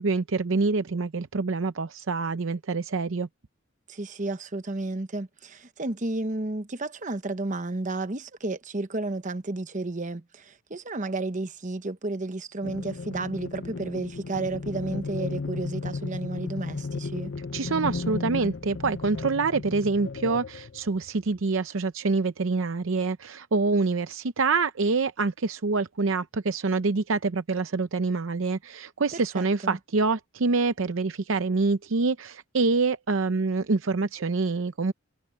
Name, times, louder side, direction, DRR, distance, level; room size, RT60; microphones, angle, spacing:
voice 1, 0.0-3.3 17.5-34.9, right 3 dB, 65° right, 0.7 m, -26 dB
voice 2, 3.9-17.3 29.1-29.8, right 2 dB, 35° right, 1.0 m, -32 dB
sound 1, 12.6-21.4, left 4 dB, 60° left, 0.6 m, -34 dB
head